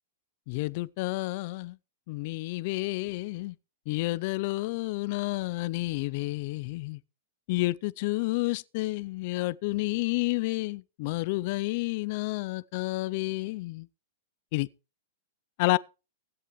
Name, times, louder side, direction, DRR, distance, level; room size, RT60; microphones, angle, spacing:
voice 1, 0.5-1.8 2.1-3.5 3.9-7.0 7.5-13.9 14.5-14.7 15.6-15.8, left 21 dB, 45° left, 0.5 m, -30 dB
16.5 x 11.0 x 3.2 m
supercardioid pair, 155°, 0 cm